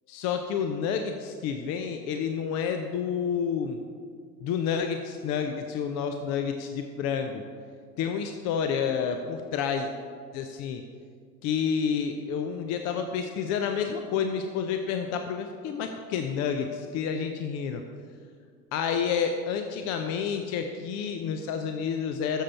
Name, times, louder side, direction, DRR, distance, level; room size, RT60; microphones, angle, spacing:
voice 1, 0.1-3.8 4.4-7.4 8.0-9.9 10.3-10.8 11.4-17.8 18.7-22.4, left 7 dB, 35° left, 6 dB, 0.6 m, -29 dB
12.5 x 7.4 x 4.3 m, 2.1 s
figure-of-eight pair, 80°, 49 cm